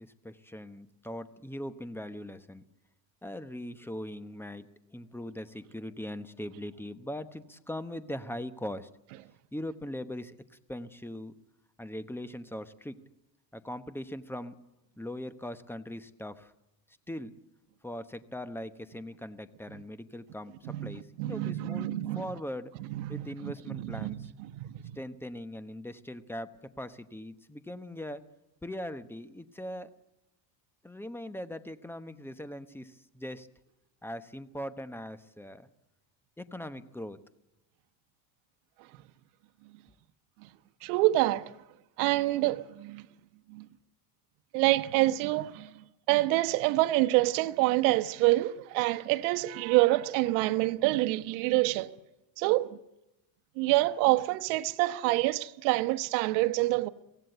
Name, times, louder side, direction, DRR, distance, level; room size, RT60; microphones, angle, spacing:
voice 1, 0.0-2.6 3.2-8.9 9.5-11.4 11.8-13.0 13.5-14.6 15.0-16.5 17.1-17.4 17.8-22.7 23.1-24.3 24.9-28.3 28.6-29.9 30.8-33.5 34.0-35.7 36.4-37.2, left 1 dB, 5° left, 1.0 m, -40 dB
voice 2, 20.7-22.2 22.9-24.3 24.5-24.7 40.8-41.5 42.0-43.0 43.5-43.7 44.5-51.9 52.4-52.8 53.6-56.9, right 18 dB, 85° right, 1.2 m, -27 dB
24.0 x 17.0 x 8.0 m
cardioid pair, 120°, 50 cm